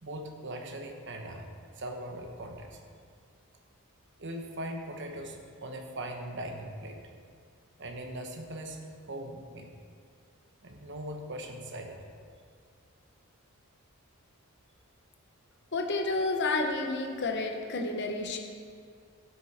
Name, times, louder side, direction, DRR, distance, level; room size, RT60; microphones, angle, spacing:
voice 1, 0.0-2.8 4.2-7.0 7.8-9.7 10.6-12.0, right 1 dB, 55° right, 3 dB, 1.2 m, -40 dB
voice 2, 15.7-18.4, left 3 dB, 50° left, 3 dB, 1.0 m, -30 dB
12.5 x 8.4 x 4.3 m, 2.1 s
head